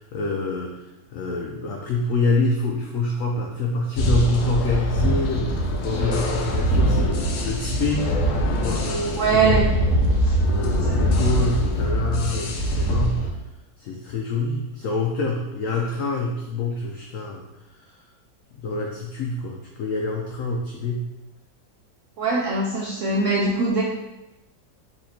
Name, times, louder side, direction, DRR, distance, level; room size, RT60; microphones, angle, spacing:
voice 1, 0.0-8.1 8.5-9.9 10.4-13.2 13.8-17.4 17.8-18.0 18.6-21.1, left 3 dB, 90° left, 1 dB, 0.7 m, -26 dB
sound 1, 4.0-13.3, right 1 dB, 70° left, 1.2 m, -23 dB
voice 2, 9.2-9.7 10.2-10.4 10.8-11.0 22.2-23.8, right 4 dB, 80° right, -2 dB, 0.6 m, -22 dB
4.3 x 2.9 x 4.2 m, 0.97 s
omnidirectional pair, 2.0 m